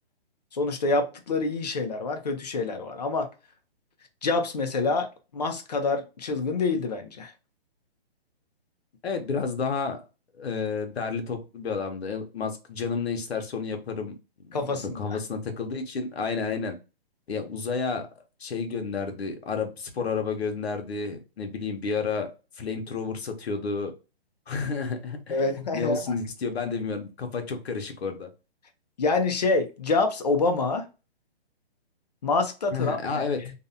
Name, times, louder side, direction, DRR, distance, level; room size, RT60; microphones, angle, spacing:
voice 1, 0.5-3.3 4.2-5.1 5.3-7.3 14.5-15.2 25.3-26.1 29.0-30.9 32.2-33.5, left 3 dB, 40° left, 0.5 m, -26 dB
voice 2, 9.0-10.0 10.4-14.2 14.5-16.8 17.3-18.1 18.4-22.3 22.6-23.9 24.5-28.3 32.7-33.4, left 5 dB, 80° left, 0.8 m, -31 dB
2.6 x 2.1 x 2.6 m
hypercardioid pair, 165°, 31 cm